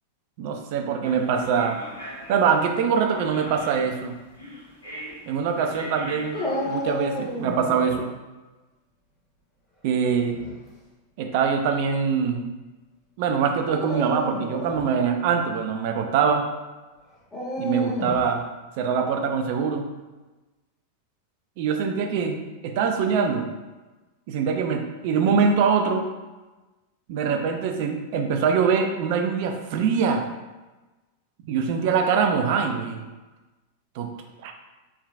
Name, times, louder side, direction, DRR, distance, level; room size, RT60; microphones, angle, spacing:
voice 1, 0.4-1.8 2.3-4.1 5.3-8.1 9.8-10.4 11.2-12.5 13.2-16.5 17.6-18.5 18.8-19.9 21.6-23.5 24.3-26.1 27.1-30.2 31.5-33.1 34.0-34.1 34.4-34.5, right 6 dB, 50° right, 4 dB, 0.5 m, -23 dB
sound 1, 1.0-7.7, equal, 85° left, 1.3 m, -41 dB
Dog, 6.3-8.0 10.1-10.6 11.4-11.5 13.6-14.8 17.3-18.3, left 1 dB, 10° left, 1.4 m, -31 dB
4.6 x 3.1 x 2.5 m, 1.2 s
figure-of-eight pair, 90°, 0 cm